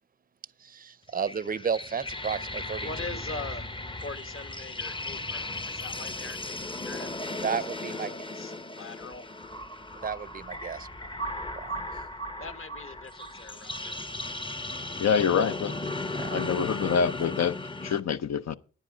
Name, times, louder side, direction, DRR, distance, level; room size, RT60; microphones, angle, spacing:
voice 1, 0.6-2.9 7.4-8.1 9.9-10.9 11.5-11.9 16.1-16.4, right 6 dB, 30° right, 0.6 m, -33 dB
sound 1, 1.1-18.0, left 2 dB, 15° left, 0.7 m, -36 dB
voice 2, 2.8-3.7 4.0-7.1 7.6-9.2 12.4-14.0, left 3 dB, 45° left, 1.4 m, -42 dB
voice 3, 15.0-15.9 16.3-18.6, left 7 dB, 60° left, 0.7 m, -26 dB
10.0 x 9.4 x 5.0 m
supercardioid pair, 50°, 29 cm